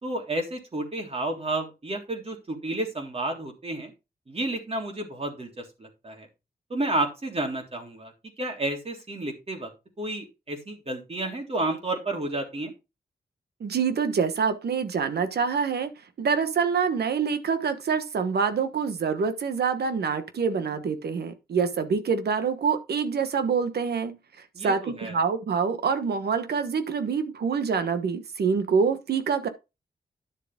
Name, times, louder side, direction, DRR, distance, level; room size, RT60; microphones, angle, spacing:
voice 1, 0.0-3.9 4.3-6.3 6.7-8.1 8.4-9.7 10.0-12.7 24.5-25.1, right 2 dB, 40° right, 3.4 m, -31 dB
voice 2, 13.6-15.9 16.2-24.2 24.6-29.5, right 6 dB, 85° right, 1.3 m, -26 dB
10.5 x 7.1 x 3.6 m
cardioid pair, 75°, 16 cm